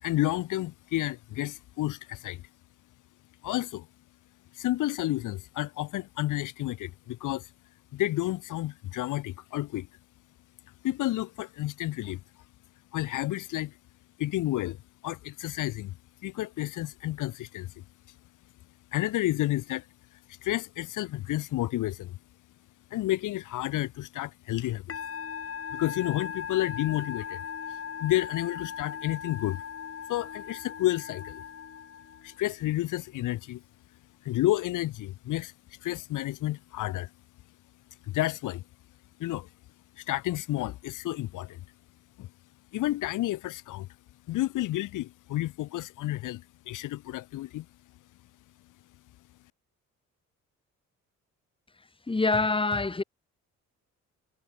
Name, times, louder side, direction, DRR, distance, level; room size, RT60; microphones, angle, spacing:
voice 1, 0.0-2.4 3.4-3.9 4.6-7.5 7.9-9.9 10.8-12.2 12.9-13.7 14.2-14.8 15.0-16.0 16.2-17.7 18.9-19.8 20.4-22.2 22.9-25.0 25.7-27.4 28.0-29.6 30.1-31.4 32.2-33.6 34.2-35.5 35.8-37.1 38.1-38.6 39.2-39.5 40.0-41.6 42.2-42.3 42.7-43.9 44.3-47.7, left 15 dB, 90° left, 4.3 m, -30 dB
Musical instrument, 24.9-32.5, left 7 dB, 50° left, 4.7 m, -39 dB
voice 2, 52.1-53.0, left 3 dB, 15° left, 2.5 m, -25 dB
cardioid pair, 90°, 30 cm